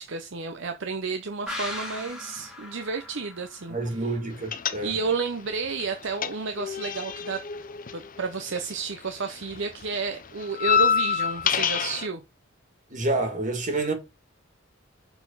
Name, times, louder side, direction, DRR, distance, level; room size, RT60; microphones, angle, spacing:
voice 1, 0.0-4.2 4.8-7.4 7.9-12.2, right 4 dB, 65° right, 0.8 m, -31 dB
sound 1, 1.5-4.9 5.2-5.3, left 1 dB, 5° right, 2.1 m, -39 dB
voice 2, 3.7-4.9 12.9-13.9, right 2 dB, 40° right, 2.1 m, -28 dB
sound 2, 4.5-5.3 5.5-8.9 9.2-12.1, left 7 dB, 45° left, 0.7 m, -27 dB
6.9 x 4.3 x 5.5 m
head